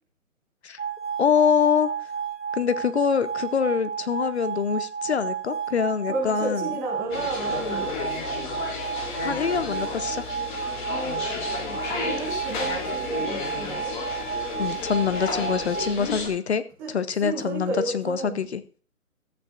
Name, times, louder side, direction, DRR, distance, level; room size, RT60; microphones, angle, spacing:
sound 1, 0.8-15.9, right 7 dB, 50° right, 2.8 m, -32 dB
voice 1, 1.2-1.9 2.5-6.6 9.2-10.3 14.6-16.6 16.9-18.6, left 7 dB, 50° left, 13 dB, 0.8 m, -24 dB
voice 2, 6.1-7.9 11.6-13.9 16.8-18.5, right 2 dB, 5° right, -2 dB, 0.7 m, -32 dB
sound 2, 7.1-16.3, left 4 dB, 35° left, 3.2 m, -32 dB
14.0 x 9.4 x 2.5 m, 0.39 s
figure-of-eight pair, 150°, 43 cm